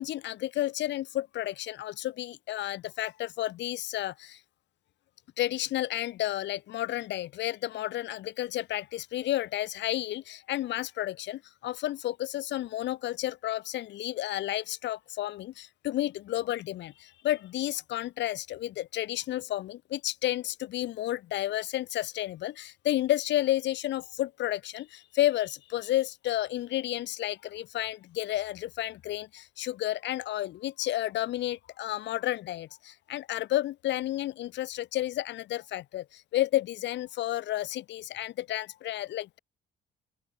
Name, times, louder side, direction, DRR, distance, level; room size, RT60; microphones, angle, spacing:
voice 1, 0.0-4.4 5.4-39.4, left 14 dB, 65° left, 0.4 m, -31 dB
open air
cardioid pair, 90°, 20 cm